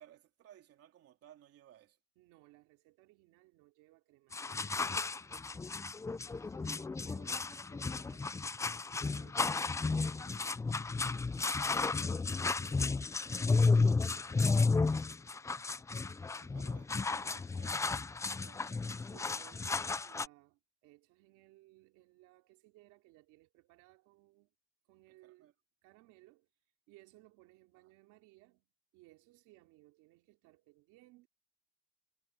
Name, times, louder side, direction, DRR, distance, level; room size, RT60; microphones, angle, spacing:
voice 1, 0.0-2.0 6.1-6.2 6.8-7.0 16.0-19.1 25.1-25.5, right 11 dB, 50° right, 3.3 m, -61 dB
voice 2, 2.2-4.8 5.5-5.7 6.4-8.3 8.9-11.2 12.6-14.7 19.1-24.5 24.9-25.5 25.8-26.5 26.9-31.3, right 19 dB, 85° right, 3.3 m, -63 dB
sound 1, 4.3-20.3, left 4 dB, 10° left, 0.4 m, -33 dB
cardioid pair, 135°, 30 cm